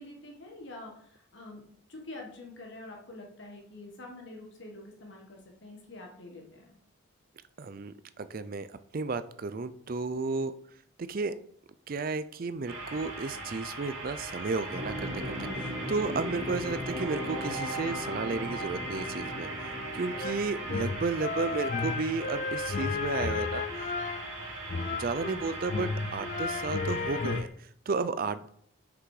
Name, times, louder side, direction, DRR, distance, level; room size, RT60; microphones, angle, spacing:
voice 1, 0.0-1.6 1.9-6.7, left 2 dB, 55° left, 0 dB, 1.4 m, -46 dB
voice 2, 7.6-10.5 11.0-11.3 11.9-19.5 19.9-23.6 25.0-28.5, right 4 dB, 45° right, 13 dB, 0.4 m, -33 dB
sound 1, 12.7-27.4, right 1 dB, 60° right, 2.7 m, -40 dB
sound 2, 14.7-20.8, equal, 20° right, 1.8 m, -37 dB
sound 3, 20.2-25.4 25.7-27.5, left 4 dB, 35° left, 0.3 m, -33 dB
6.1 x 6.0 x 4.8 m, 0.66 s
head